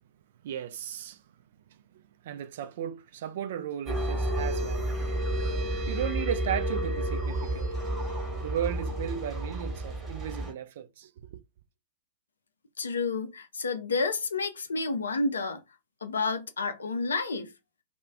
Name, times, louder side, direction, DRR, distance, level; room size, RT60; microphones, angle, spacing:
voice 1, 0.4-1.2 1.9-5.2 5.7-7.8 8.4-11.4, right 9 dB, 55° right, 0.3 m, -35 dB
sound 1, 3.9-10.5, right 1 dB, 15° right, 1.0 m, -31 dB
voice 2, 12.8-15.6 16.0-17.5, left 3 dB, 75° left, 0.5 m, -30 dB
2.3 x 2.1 x 3.4 m
figure-of-eight pair, 100°, 0 cm